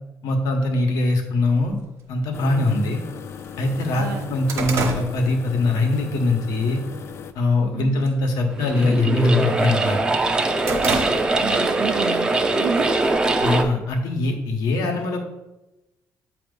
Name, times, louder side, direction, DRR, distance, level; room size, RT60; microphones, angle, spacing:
voice 1, 0.2-1.8 2.1-3.0 3.6-6.8 7.3-10.1 13.4-15.2, left 2 dB, 85° left, 4 dB, 1.1 m, -22 dB
sound 1, 1.6-1.7 2.6-2.7 3.2-3.3 3.6-6.0 6.4-6.7 7.1-7.6 7.9-8.2 8.5-9.8 10.2-11.6 12.0-12.1 13.0-13.9, right 3 dB, 50° right, 1.1 m, -29 dB
sound 2, 2.3-7.3, left 7 dB, 45° left, 0.4 m, -37 dB
voice 2, 3.9-4.4 7.7-8.1 11.4-13.0, right 7 dB, 70° right, 4 dB, 0.6 m, -30 dB
sound 3, 8.5-13.6, right 2 dB, 15° right, 0.5 m, -22 dB
7.9 x 2.9 x 5.2 m, 0.99 s
cardioid pair, 155°, 6 cm